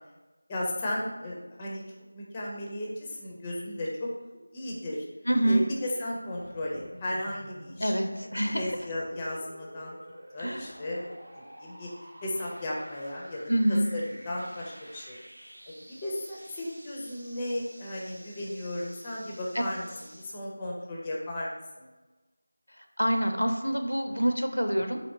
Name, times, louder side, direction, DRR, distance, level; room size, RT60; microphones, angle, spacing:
voice 1, 0.5-1.8 2.1-4.1 4.5-5.1 5.4-7.9 8.5-10.0 10.3-11.9 12.2-13.4 13.7-15.2 15.7-21.9 24.1-24.2, left 1 dB, 15° left, -3 dB, 0.4 m, -35 dB
voice 2, 5.3-5.6 7.8-8.7 10.4-10.7 13.5-13.9 19.5-19.6 23.0-25.1, equal, 90° left, 5 dB, 0.5 m, -26 dB
sound 1, 6.4-20.3, equal, 65° right, 0.7 m, -50 dB
4.3 x 2.8 x 2.6 m, 1.2 s
figure-of-eight pair, 170°, 0 cm